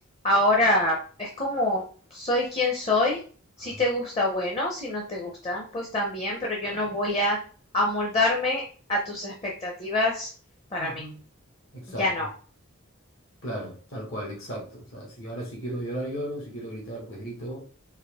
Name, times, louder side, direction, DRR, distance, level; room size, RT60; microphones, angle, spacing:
voice 1, 0.2-1.8 2.1-3.2 3.6-7.4 7.7-8.6 8.9-10.3 10.7-11.0 12.0-12.3, left 1 dB, 30° left, -1 dB, 0.8 m, -25 dB
voice 2, 10.8-11.2 11.7-12.3 13.4-17.6, right 1 dB, 65° left, -3 dB, 1.7 m, -36 dB
4.4 x 3.0 x 3.6 m, 0.41 s
head